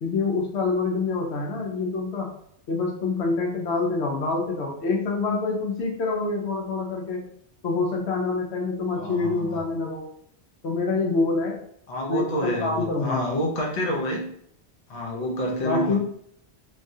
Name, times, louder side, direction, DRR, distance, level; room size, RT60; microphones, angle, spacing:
voice 1, 0.0-2.3 2.7-7.2 7.6-10.0 10.6-11.6 12.1-13.4 15.6-16.0, left 3 dB, 70° left, 0 dB, 0.8 m, -26 dB
voice 2, 9.0-9.6 11.9-14.3 14.9-16.0, equal, 45° left, 0 dB, 0.6 m, -28 dB
3.3 x 2.3 x 2.6 m, 0.69 s
omnidirectional pair, 1.2 m